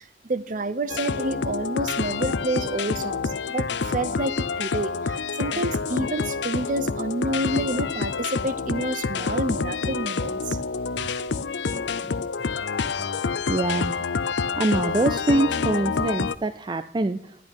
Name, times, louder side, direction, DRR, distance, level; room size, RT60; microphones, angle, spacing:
voice 1, 0.0-10.6 10.9-11.3, right 2 dB, 45° right, 0.7 m, -29 dB
sound 1, 0.9-16.4, left 5 dB, 65° left, 0.5 m, -27 dB
voice 2, 13.5-14.0 14.6-17.4, right 2 dB, 25° right, 0.4 m, -24 dB
11.0 x 10.5 x 5.2 m
head